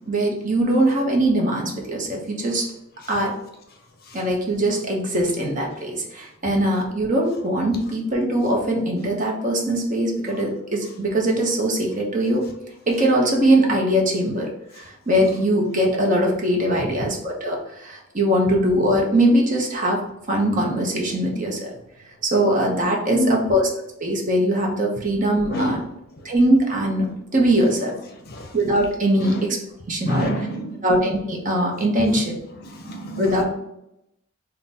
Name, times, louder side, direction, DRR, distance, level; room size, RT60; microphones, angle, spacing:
voice 1, 0.1-2.6 3.1-3.3 4.1-12.5 12.9-14.5 14.8-20.0 20.3-21.7 22.2-23.7 24.0-25.8 26.2-28.0 28.5-29.6 29.9-30.5 30.8-32.4 33.2-33.4, right 1 dB, 35° right, -1 dB, 0.7 m, -21 dB
voice 2, 30.0-30.7 32.6-33.3, equal, 45° left, 3 dB, 0.6 m, -26 dB
3.8 x 2.2 x 4.0 m, 0.83 s
head